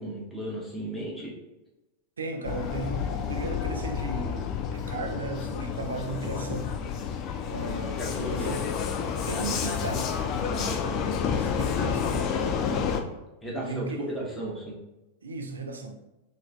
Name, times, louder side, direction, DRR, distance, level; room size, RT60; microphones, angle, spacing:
voice 1, 0.0-1.3 8.0-8.5 10.4-11.0 12.7-13.0 13.4-14.7, right 1 dB, 5° left, 0.9 m, -35 dB
voice 2, 2.2-6.8 7.5-8.7 9.2-10.2 11.1-12.3 13.6-14.1 15.2-16.0, right 3 dB, 70° right, 0.4 m, -36 dB
Vehicle, 2.4-13.0, left 7 dB, 35° left, 0.3 m, -30 dB
3.0 x 2.4 x 2.3 m
figure-of-eight pair, 90°, 0 cm